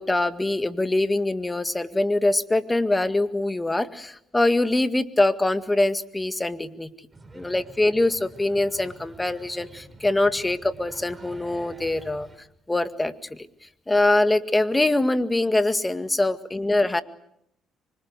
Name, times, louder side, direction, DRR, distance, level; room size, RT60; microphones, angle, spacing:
voice 1, 0.0-6.9 7.3-12.3 12.7-13.5 13.9-17.0, left 2 dB, 15° left, 10 dB, 1.9 m, -23 dB
sound 1, 7.1-12.4, right 2 dB, 20° right, 4.4 m, -47 dB
26.0 x 24.5 x 8.2 m, 0.76 s
cardioid pair, 90°, 0 cm